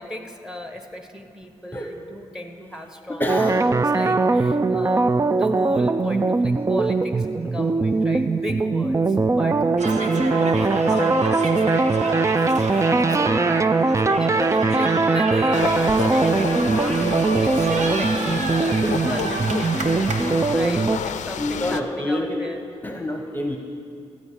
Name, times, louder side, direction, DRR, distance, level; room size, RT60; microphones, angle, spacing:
voice 1, 0.0-3.3 3.6-12.8 13.1-13.6 14.2-20.0 20.5-22.6, left 1 dB, 5° right, 5 dB, 1.4 m, -35 dB
voice 2, 3.1-3.7 21.4-22.4 22.8-23.6, left 1 dB, 15° left, 4 dB, 1.0 m, -27 dB
sound 1, 3.3-21.0, right 3 dB, 25° right, 0.4 m, -21 dB
sound 2, 9.8-20.5, right 3 dB, 70° right, 1.1 m, -29 dB
sound 3, 15.5-21.8, left 8 dB, 80° left, 0.5 m, -31 dB
14.0 x 5.2 x 8.5 m, 2.4 s
supercardioid pair, 45°, 12 cm